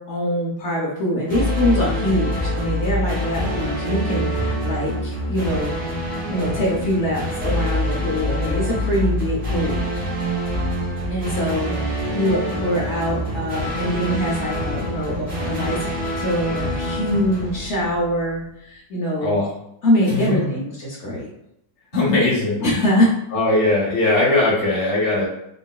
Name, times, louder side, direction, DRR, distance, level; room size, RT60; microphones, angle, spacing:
voice 1, 0.0-5.7 6.3-9.9 11.1-15.8 16.2-19.3 19.8-21.3 22.6-23.1, equal, 70° left, -4 dB, 0.6 m, -23 dB
sound 1, 1.3-18.3, equal, 35° right, 1.0 m, -25 dB
voice 2, 21.9-22.8 23.3-25.3, left 2 dB, 30° left, -7 dB, 1.1 m, -19 dB
3.7 x 2.3 x 2.3 m, 0.78 s
omnidirectional pair, 2.0 m